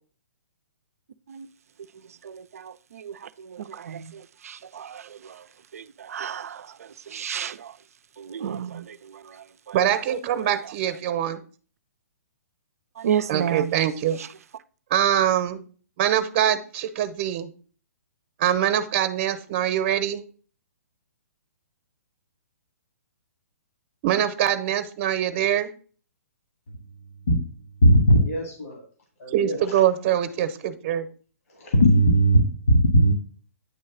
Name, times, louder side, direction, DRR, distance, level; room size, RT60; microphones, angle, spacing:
voice 1, 1.9-5.5 5.7-7.8 8.2-9.8 10.3-10.7 13.0-13.9 14.2-14.3, right 9 dB, 70° right, 0.5 m, -33 dB
voice 2, 9.7-11.4 13.3-14.2 14.9-15.6 16.0-17.5 18.4-20.2 24.0-25.7 29.3-31.1, right 10 dB, 40° right, 0.9 m, -23 dB
voice 3, 27.8-28.8 29.2-29.8 31.6-33.1, equal, 65° left, 2.1 m, -18 dB
9.3 x 3.1 x 5.9 m
hypercardioid pair, 135°, 8 cm